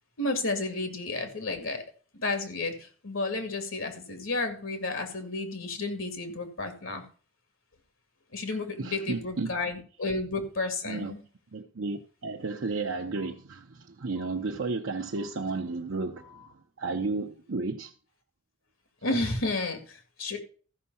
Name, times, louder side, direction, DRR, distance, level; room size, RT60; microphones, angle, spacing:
voice 1, 0.2-1.8 2.2-7.0 8.3-11.2 19.0-20.4, left 2 dB, 85° left, 2.3 m, -32 dB
voice 2, 8.8-9.5 10.8-11.1 11.5-17.9, right 3 dB, 80° right, 0.8 m, -33 dB
14.0 x 5.5 x 5.6 m
head